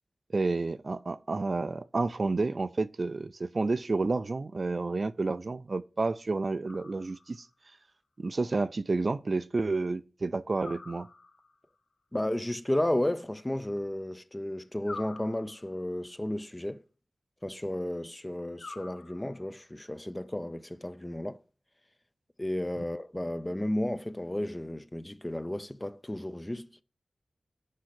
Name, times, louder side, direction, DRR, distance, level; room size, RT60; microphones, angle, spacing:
voice 1, 0.3-7.5 8.2-11.1, right 3 dB, 55° right, 0.4 m, -30 dB
sound 1, 6.7-7.5 10.6-11.6 14.8-15.9 18.6-19.6, left 3 dB, 85° left, 1.3 m, -46 dB
voice 2, 12.1-16.8 17.4-21.4 22.4-26.7, left 1 dB, 20° left, 0.5 m, -33 dB
6.4 x 4.8 x 6.0 m
cardioid pair, 45°, 0 cm